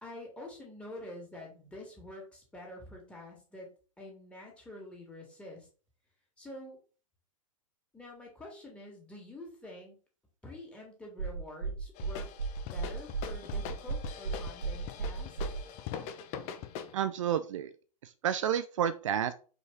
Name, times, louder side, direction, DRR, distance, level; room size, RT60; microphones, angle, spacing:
voice 1, 0.0-3.7 4.0-5.7 6.4-6.8 7.9-10.0 10.4-12.3 12.6-15.4, left 1 dB, 5° left, -2 dB, 2.7 m, -47 dB
sound 1, 11.2-15.6, right 4 dB, 75° right, 1.9 m, -34 dB
sound 2, 12.0-16.9, left 8 dB, 35° left, 0.9 m, -42 dB
voice 2, 16.9-17.7 18.0-19.3, right 9 dB, 60° right, 13 dB, 0.5 m, -30 dB
5.3 x 4.7 x 4.2 m, 0.38 s
figure-of-eight pair, 100°, 18 cm